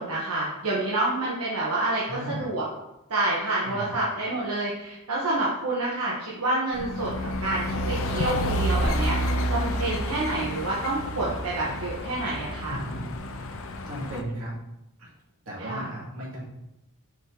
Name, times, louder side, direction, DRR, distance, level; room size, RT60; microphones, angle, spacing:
voice 1, 0.0-2.6 3.1-7.1 7.4-12.8 15.6-15.9, right 2 dB, 90° right, -6 dB, 1.4 m, -28 dB
voice 2, 2.1-2.5 3.6-3.9 12.7-13.0 13.4-13.6 13.9-14.5 15.0-15.1 15.5-16.4, equal, 70° right, -6 dB, 2.5 m, -35 dB
sound 1, 6.7-14.2, equal, 65° left, 0.6 m, -29 dB
6.2 x 4.6 x 3.9 m, 0.89 s
head